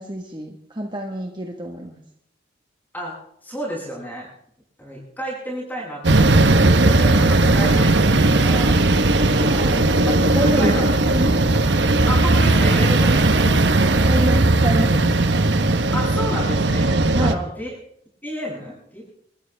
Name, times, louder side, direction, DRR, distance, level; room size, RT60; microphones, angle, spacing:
voice 1, 0.0-2.0 9.2-9.8 10.3-11.3 14.0-15.1 17.1-17.4, right 1 dB, 25° right, 2 dB, 1.5 m, -28 dB
voice 2, 3.4-4.3 4.8-8.8 9.4-9.8 10.3-10.9 12.1-13.9 15.9-17.7 18.2-19.1, equal, 10° left, -4 dB, 7.8 m, -31 dB
sound 1, 6.0-17.3, right 2 dB, 80° right, 1.1 m, -17 dB
29.0 x 14.5 x 3.5 m, 0.71 s
head